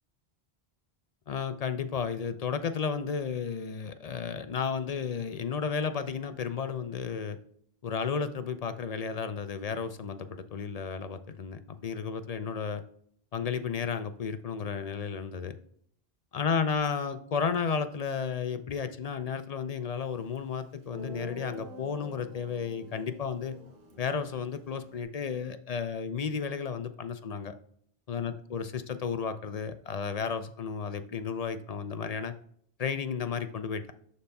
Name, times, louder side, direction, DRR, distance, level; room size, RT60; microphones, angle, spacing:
voice 1, 1.3-7.4 7.8-12.8 13.3-15.5 16.3-23.5 24.0-27.5 28.1-32.3 32.8-33.9, left 6 dB, 50° left, 10 dB, 0.5 m, -33 dB
Guitar, 20.4-20.5 20.9-25.0, equal, 80° right, 1.5 m, -47 dB
12.0 x 4.1 x 2.2 m, 0.64 s
omnidirectional pair, 1.0 m